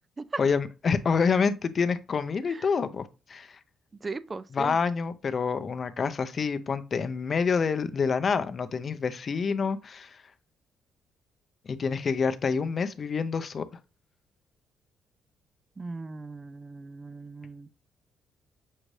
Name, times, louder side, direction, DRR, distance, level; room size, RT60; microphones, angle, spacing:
voice 1, 0.4-3.6 4.5-10.2 11.7-13.7, left 5 dB, 45° left, 0.5 m, -27 dB
voice 2, 4.0-4.8 15.8-17.7, right 3 dB, 30° right, 0.3 m, -38 dB
6.3 x 2.6 x 3.1 m
cardioid pair, 90°, 0 cm